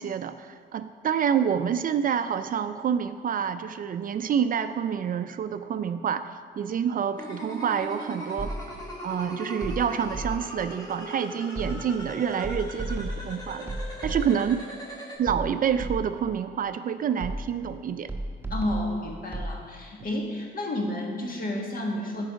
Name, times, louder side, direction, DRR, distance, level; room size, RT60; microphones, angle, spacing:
voice 1, 0.0-6.3 6.6-8.5 9.0-13.7 14.0-14.6 15.2-18.1, right 8 dB, 45° right, 11 dB, 0.4 m, -27 dB
sound 1, 7.2-15.2, equal, 20° left, 2.0 m, -39 dB
sound 2, 8.4-8.9 9.6-10.7 11.5-12.1 12.4-14.6 15.3-16.3 17.2-17.7 18.1-19.6, right 1 dB, 10° right, 1.0 m, -34 dB
voice 2, 18.5-22.3, left 1 dB, 45° left, 0 dB, 1.6 m, -31 dB
9.9 x 4.7 x 5.2 m, 2.1 s
cardioid pair, 90°, 20 cm